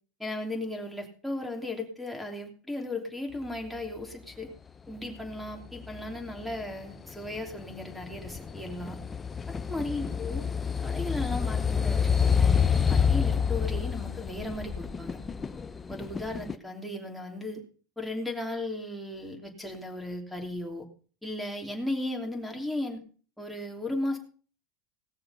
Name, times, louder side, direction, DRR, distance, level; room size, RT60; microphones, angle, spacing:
voice 1, 0.2-4.5 4.9-9.0 9.5-10.5 10.8-12.6 12.9-15.2 15.9-17.6 18.0-20.9 21.2-23.0 23.4-24.2, left 1 dB, ahead, 0 dB, 3.0 m, -36 dB
sound 1, 5.2-16.5, left 6 dB, 20° left, 0.7 m, -28 dB
18.5 x 6.7 x 5.6 m, 0.41 s
supercardioid pair, 120°, 0 cm